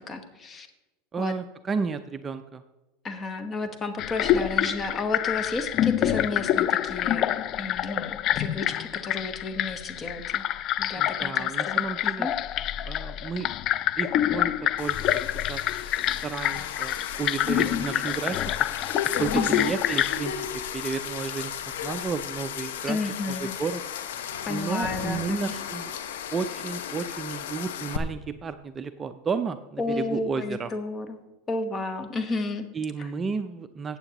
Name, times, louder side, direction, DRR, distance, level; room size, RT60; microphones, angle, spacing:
voice 1, 0.1-0.7 1.2-1.3 3.0-10.4 10.8-12.3 17.7-17.9 19.3-19.7 22.9-23.5 24.5-25.5 29.8-31.2 31.5-32.7 33.0-33.1, left 3 dB, 25° left, 8 dB, 1.1 m, -32 dB
voice 2, 1.1-2.6 10.9-12.3 12.9-13.5 14.0-14.5 14.8-15.2 15.5-15.6 16.2-18.4 19.2-20.3 20.7-21.6 21.8-23.0 23.3-23.8 24.5-25.9 26.3-30.7 32.7-34.0, right 5 dB, 20° right, 9 dB, 0.5 m, -32 dB
sound 1, 4.0-20.2, left 11 dB, 40° left, 0.4 m, -27 dB
sound 2, 14.8-28.0, left 9 dB, 90° left, 0.8 m, -35 dB
15.0 x 8.8 x 3.0 m, 1.0 s
supercardioid pair, 125°, 0 cm